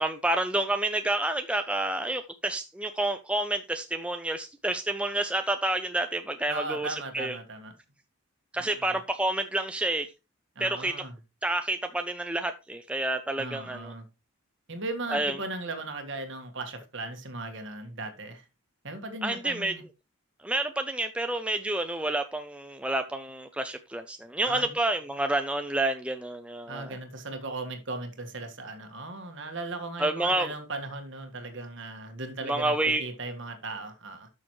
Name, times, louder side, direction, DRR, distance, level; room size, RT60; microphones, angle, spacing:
voice 1, 0.0-7.4 8.5-10.1 10.6-10.9 11.4-13.9 15.1-15.3 19.2-19.8 20.4-26.9 30.0-30.5 32.5-33.0, right 1 dB, 5° right, 0.4 m, -29 dB
voice 2, 6.5-7.7 8.6-9.0 10.5-11.1 13.4-14.0 14.7-18.4 18.8-19.8 24.4-24.7 26.7-34.3, right 2 dB, 55° right, 1.6 m, -37 dB
12.0 x 6.4 x 3.1 m
head